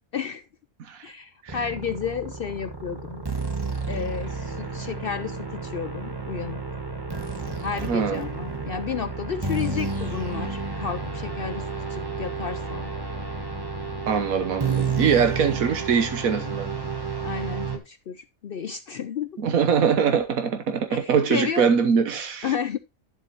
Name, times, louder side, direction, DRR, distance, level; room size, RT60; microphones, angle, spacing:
voice 1, 0.1-0.4 1.0-3.2 3.9-6.8 7.6-11.6 11.9-12.9 17.2-19.4 20.9-21.7 22.4-22.8, left 7 dB, 60° left, 0.6 m, -32 dB
sound 1, 1.5-17.8, right 4 dB, 15° right, 1.5 m, -31 dB
voice 2, 7.8-8.2 14.1-16.7 19.4-22.5, right 6 dB, 90° right, 1.5 m, -23 dB
11.5 x 7.5 x 2.9 m
omnidirectional pair, 1.4 m